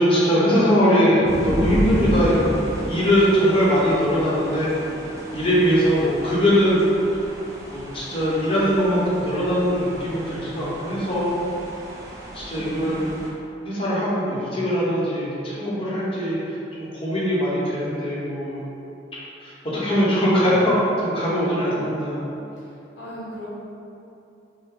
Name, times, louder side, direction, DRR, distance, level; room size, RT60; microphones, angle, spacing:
voice 1, 0.0-2.6 2.9-4.7 5.3-6.8 7.7-11.4 12.3-13.0 13.6-18.6 19.4-22.1, equal, 30° left, -8 dB, 0.9 m, -21 dB
sound 1, 1.2-13.3, equal, 15° right, 0.5 m, -32 dB
voice 2, 12.2-13.2 21.2-22.7 23.0-23.5, left 1 dB, 65° left, -8 dB, 1.1 m, -37 dB
5.6 x 2.1 x 3.8 m, 2.8 s
head